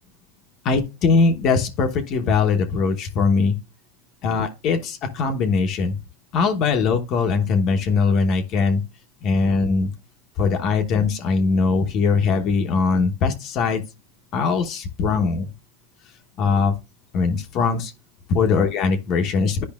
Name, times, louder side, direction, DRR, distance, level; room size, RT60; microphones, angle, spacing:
voice 1, 0.6-3.6 4.2-6.0 6.3-8.8 9.2-9.9 10.4-13.8 14.3-15.5 16.4-16.8 17.1-17.9 18.3-19.6, left 4 dB, 45° left, 1.0 m, -21 dB
11.0 x 4.8 x 2.4 m
hypercardioid pair, 105°, 0 cm